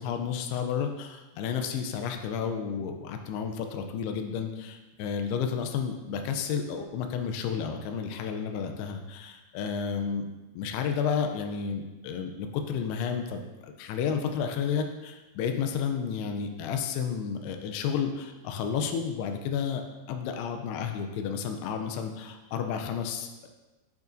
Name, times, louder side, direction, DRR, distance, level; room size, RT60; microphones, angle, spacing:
voice 1, 0.0-10.2 10.5-19.8 20.1-23.5, left 7 dB, 85° left, 5 dB, 2.3 m, -31 dB
9.0 x 5.7 x 2.6 m, 1.1 s
omnidirectional pair, 5.2 m